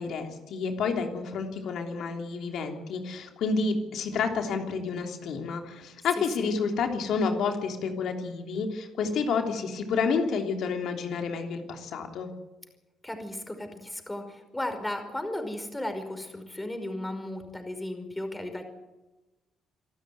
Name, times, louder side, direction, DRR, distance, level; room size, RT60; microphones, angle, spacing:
voice 1, 0.0-12.3, left 5 dB, 75° left, 4 dB, 3.2 m, -29 dB
voice 2, 6.1-6.5 13.0-18.6, left 1 dB, 10° left, 7 dB, 5.1 m, -35 dB
26.5 x 13.0 x 9.4 m, 1.1 s
cardioid pair, 90°, 0 cm